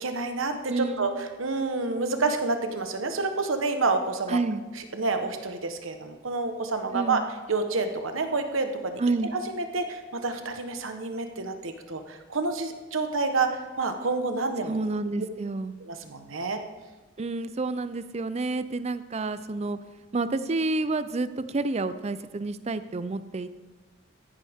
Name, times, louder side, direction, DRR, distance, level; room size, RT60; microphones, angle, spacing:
voice 1, 0.0-4.4 4.8-7.2 7.5-14.8 15.8-16.6, right 3 dB, 80° right, 7 dB, 1.1 m, -29 dB
voice 2, 0.7-1.1 4.3-4.6 6.9-7.2 9.0-9.3 14.7-15.7 17.2-19.8 20.1-23.5, right 3 dB, 35° right, 13 dB, 0.5 m, -29 dB
14.0 x 10.5 x 3.6 m, 1.2 s
head